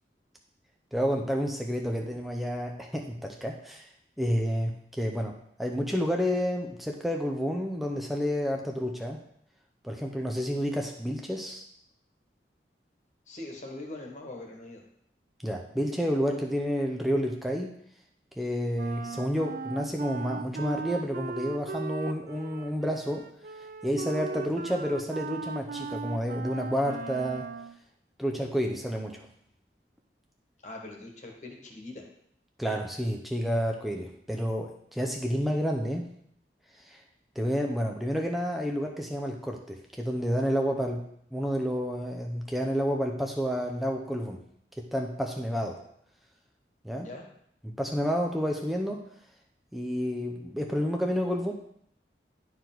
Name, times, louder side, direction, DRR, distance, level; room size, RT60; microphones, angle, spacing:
voice 1, 0.9-3.9 4.2-9.2 9.8-11.6 15.4-17.7 18.4-23.3 23.8-27.5 28.2-29.3 32.6-36.1 36.8-37.0 37.4-41.0 41.3-44.4 44.8-45.8 46.8-47.1 47.6-49.0 49.7-51.5, equal, ahead, 1 dB, 0.6 m, -30 dB
voice 2, 13.3-14.8 30.6-32.0 46.9-47.3, left 2 dB, 45° left, 1 dB, 1.5 m, -42 dB
Wind instrument woodwind instrument, 18.7-27.8, right 4 dB, 50° right, 0.4 m, -38 dB
10.5 x 4.7 x 3.9 m, 0.70 s
head